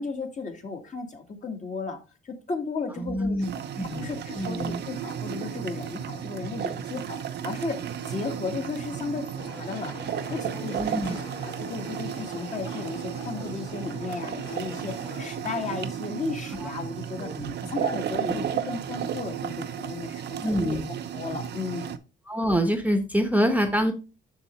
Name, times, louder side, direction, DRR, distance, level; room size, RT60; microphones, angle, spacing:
voice 1, 0.0-2.0 2.2-3.4 3.9-7.2 7.4-7.8 8.1-17.3 17.6-20.8 21.1-22.0, left 4 dB, 40° left, 3 dB, 1.9 m, -34 dB
voice 2, 3.0-4.8 10.7-11.2 16.6-16.7 17.2-17.5 18.1-18.5 20.4-20.9 22.3-23.9, equal, 10° right, 6 dB, 1.0 m, -26 dB
sound 1, 3.4-22.0, right 9 dB, 60° right, 0.7 m, -34 dB
sound 2, 9.4-15.3, left 4 dB, 80° left, 2.2 m, -44 dB
7.1 x 6.5 x 3.2 m, 0.31 s
cardioid pair, 90°, 20 cm